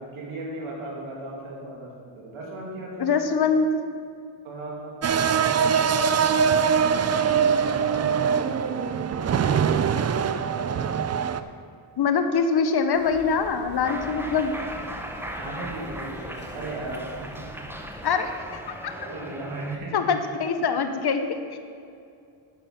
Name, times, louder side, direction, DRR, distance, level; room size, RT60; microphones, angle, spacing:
voice 1, 0.1-3.2 4.4-6.1 6.9-10.1 15.3-17.5 18.9-20.1, right 2 dB, 80° right, -2 dB, 2.6 m, -37 dB
voice 2, 3.0-3.7 12.0-14.5 18.0-18.3 18.8-18.9 19.9-21.6, left 5 dB, 50° left, 7 dB, 0.9 m, -23 dB
sound 1, 5.0-11.4, right 7 dB, 35° right, 0.4 m, -22 dB
sound 2, 12.9-19.0, equal, 20° left, 1.8 m, -45 dB
Cheering, 13.8-19.8, right 1 dB, 5° right, 0.8 m, -37 dB
8.7 x 7.3 x 5.8 m, 2.4 s
cardioid pair, 85°, 49 cm